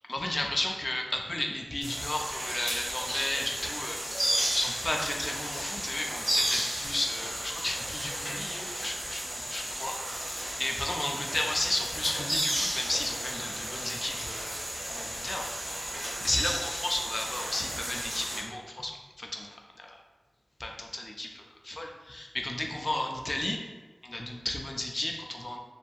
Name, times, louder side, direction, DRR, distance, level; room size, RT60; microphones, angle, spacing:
voice 1, 0.1-4.0 4.5-9.9 10.6-14.6 14.9-15.4 16.2-18.9 19.2-20.0 20.6-23.6 24.0-25.6, left 1 dB, 40° left, 1 dB, 0.3 m, -33 dB
sound 1, 1.8-18.4, equal, 90° right, 1.2 m, -33 dB
2.6 x 2.6 x 2.2 m, 1.3 s
wide cardioid pair, 60°, 0 cm